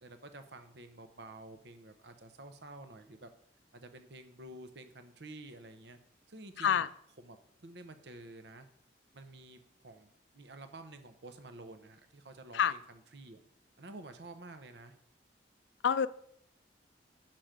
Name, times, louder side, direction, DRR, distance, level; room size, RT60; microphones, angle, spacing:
voice 1, 0.0-3.3 3.7-6.0 6.3-6.9 7.2-8.7 9.1-13.4 13.8-15.0, right 2 dB, 65° right, 8 dB, 0.9 m, -50 dB
voice 2, 6.6-6.9 12.5-12.7 15.8-16.1, left 8 dB, 80° left, 17 dB, 0.4 m, -27 dB
6.3 x 5.9 x 5.2 m, 0.68 s
head